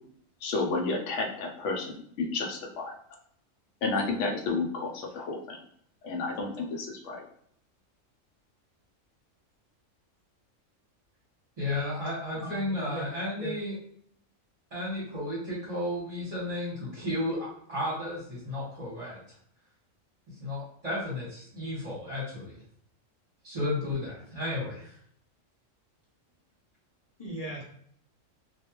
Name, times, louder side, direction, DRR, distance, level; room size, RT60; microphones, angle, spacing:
voice 1, 0.4-2.9 3.8-5.6 6.0-7.2, left 3 dB, 70° left, 2 dB, 0.9 m, -31 dB
voice 2, 11.6-13.7 14.7-19.2 20.4-22.6 23.4-24.8, left 1 dB, 30° right, -7 dB, 0.9 m, -33 dB
voice 3, 12.3-13.1 13.4-13.5 27.2-27.6, right 1 dB, 50° left, -5 dB, 0.4 m, -38 dB
2.3 x 2.2 x 2.9 m, 0.66 s
omnidirectional pair, 1.3 m